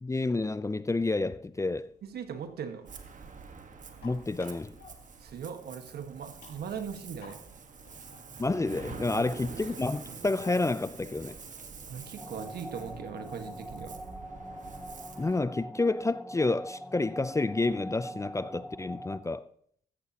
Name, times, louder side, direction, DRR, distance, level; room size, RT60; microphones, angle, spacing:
voice 1, 0.0-1.9 4.0-4.7 8.4-11.4 15.2-19.5, left 3 dB, 20° left, 0.5 m, -29 dB
sound 1, 1.5-13.0, left 4 dB, 80° left, 5.6 m, -56 dB
voice 2, 2.1-2.9 5.2-7.4 11.9-14.0, right 7 dB, 70° right, 1.6 m, -39 dB
Ocean, 2.9-15.4, right 5 dB, 50° right, 1.6 m, -46 dB
sound 2, 12.2-19.2, equal, ahead, 1.7 m, -43 dB
14.0 x 13.5 x 3.0 m
supercardioid pair, 55°, 17 cm